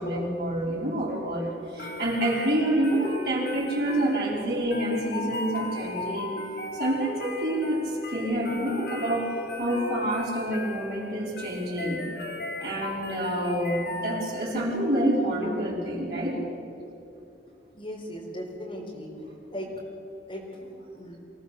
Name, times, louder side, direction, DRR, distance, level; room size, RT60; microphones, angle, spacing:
voice 1, 0.0-6.4 6.7-12.0 12.6-16.4, right 1 dB, 60° right, -4 dB, 5.2 m, -28 dB
sound 1, 1.8-14.6, left 2 dB, 65° left, 4.0 m, -37 dB
voice 2, 17.7-19.1 19.5-19.7 20.3-20.7 20.9-21.2, equal, 30° left, -2 dB, 4.2 m, -37 dB
24.5 x 18.0 x 6.7 m, 2.8 s
head